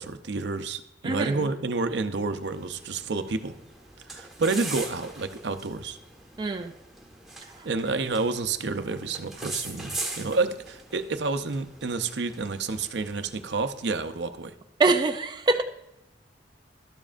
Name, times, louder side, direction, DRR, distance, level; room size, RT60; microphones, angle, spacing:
voice 1, 0.0-3.5 4.1-6.0 7.6-14.6, right 3 dB, 70° right, 9 dB, 0.6 m, -29 dB
voice 2, 1.0-1.4 6.4-6.7 7.6-7.7 14.8-15.6, right 3 dB, 25° right, 5 dB, 0.3 m, -24 dB
sound 1, 2.4-14.1, right 2 dB, ahead, 1.4 m, -41 dB
12.0 x 7.3 x 2.5 m, 0.89 s
head